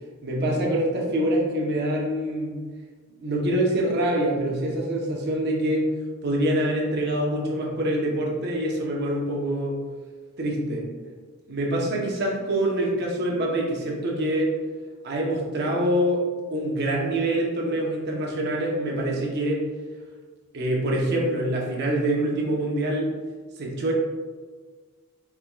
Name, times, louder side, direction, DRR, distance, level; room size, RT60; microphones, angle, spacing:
voice 1, 0.2-2.6 3.2-5.9 6.2-9.8 10.4-10.8 11.5-14.6 15.0-16.2 16.5-19.7 20.5-23.1 23.6-23.9, right 1 dB, 50° right, -2 dB, 0.8 m, -25 dB
4.6 x 3.5 x 2.2 m, 1.4 s
head